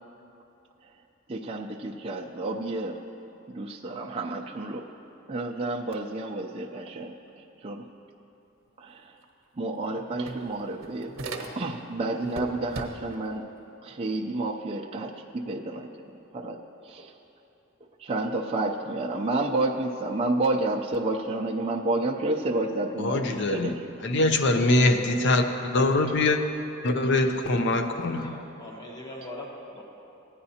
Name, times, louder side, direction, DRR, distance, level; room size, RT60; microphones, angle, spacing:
voice 1, 1.3-3.0 3.5-4.9 5.3-7.1 7.6-7.9 8.8-9.1 9.6-11.2 11.6-13.5 13.8-15.9 16.3-16.6 16.9-17.1 18.0-23.8, right 2 dB, 30° right, 0.5 m, -30 dB
sound 1, 9.2-9.3 9.6-11.9 12.2-13.3, right 2 dB, 75° right, 0.9 m, -38 dB
voice 2, 23.0-23.7 24.0-26.4 26.8-28.3, left 2 dB, 60° left, 0.6 m, -23 dB
voice 3, 27.8-29.8, left 1 dB, 20° left, 1.1 m, -42 dB
15.5 x 9.6 x 2.8 m
head